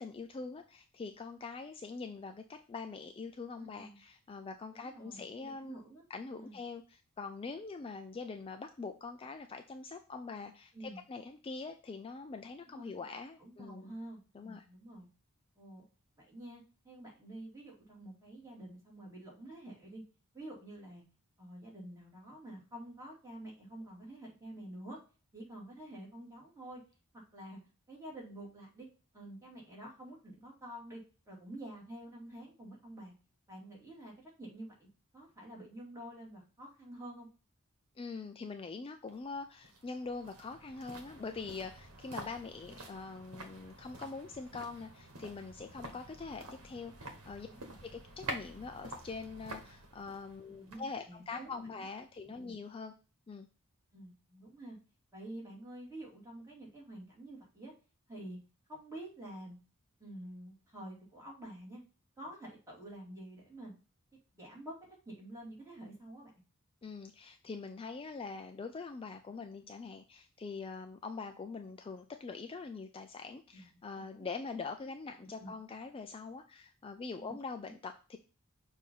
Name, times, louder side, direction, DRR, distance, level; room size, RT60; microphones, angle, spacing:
voice 1, 0.0-5.8 6.1-13.9 14.3-14.7 38.0-47.5 47.8-52.9 53.3-53.5 66.8-78.2, left 4 dB, 25° left, 6 dB, 0.3 m, -44 dB
voice 2, 3.6-4.0 4.7-6.0 6.3-6.6 10.7-11.0 12.7-12.9 13.4-15.1 15.6-15.8 16.2-20.0 20.3-21.0 21.4-25.0 25.3-26.8 27.3-27.6 27.9-28.9 29.1-33.1 33.5-34.9 35.1-37.3 47.4-47.8 50.4-51.6 52.2-52.6 53.9-54.8 55.1-57.7 58.1-58.4 58.7-59.6 60.0-61.8 62.2-63.7 64.3-64.8 65.1-66.3 73.5-74.3 75.4-75.5 77.2-77.3 77.7-77.8, right 1 dB, 15° right, -4 dB, 2.3 m, -48 dB
sound 1, 39.1-52.2 52.5-52.6, right 1 dB, 75° right, 1.3 m, -48 dB
6.5 x 2.7 x 5.4 m, 0.35 s
head